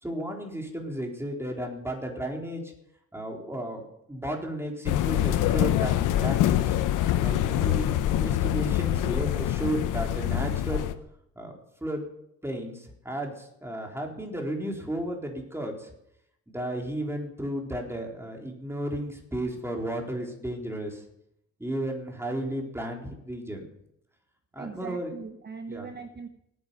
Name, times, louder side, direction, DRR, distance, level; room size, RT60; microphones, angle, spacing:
voice 1, 0.0-2.7 3.1-6.8 7.2-10.9 11.4-12.1 12.4-15.9 16.5-21.0 21.6-23.7 24.5-25.1 25.7-25.9, right 1 dB, 10° right, 1 dB, 4.0 m, -33 dB
sound 1, 4.9-10.9, left 12 dB, 85° left, 1.0 m, -25 dB
voice 2, 24.6-26.3, right 5 dB, 35° right, 9 dB, 1.0 m, -40 dB
17.5 x 9.8 x 7.0 m, 0.78 s
cardioid pair, 90°, 30 cm